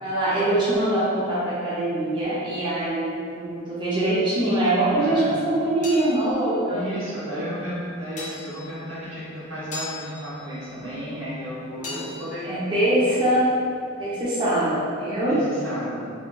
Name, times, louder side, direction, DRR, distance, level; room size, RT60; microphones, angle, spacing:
voice 1, 0.0-6.9 11.8-12.0 12.4-13.5 14.0-15.4, right 1 dB, 25° right, -10 dB, 0.5 m, -23 dB
voice 2, 5.0-5.4 6.7-13.2 15.3-16.1, equal, 80° right, -10 dB, 1.0 m, -33 dB
sound 1, 5.5-14.0, left 3 dB, 40° left, 0.4 m, -42 dB
2.7 x 2.5 x 2.2 m, 2.3 s
head